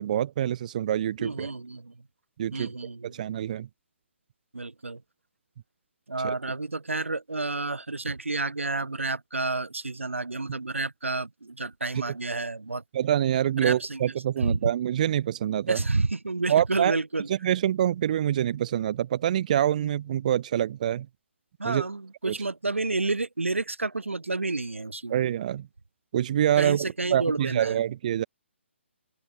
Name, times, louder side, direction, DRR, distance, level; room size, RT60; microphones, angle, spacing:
voice 1, 0.0-1.5 2.4-2.7 3.0-3.7 6.2-6.3 12.9-15.8 16.5-16.9 17.3-21.1 21.6-21.8 22.2-22.3 25.1-25.7 26.1-28.2, right 11 dB, 35° right, 0.8 m, -26 dB
voice 2, 1.2-1.9 2.5-3.2 4.5-5.0 6.1-12.8 13.6-14.0 14.4-14.7 15.7-17.3 21.6-25.2 26.6-27.8, right 3 dB, 75° right, 0.9 m, -30 dB
open air
figure-of-eight pair, 135°, 7 cm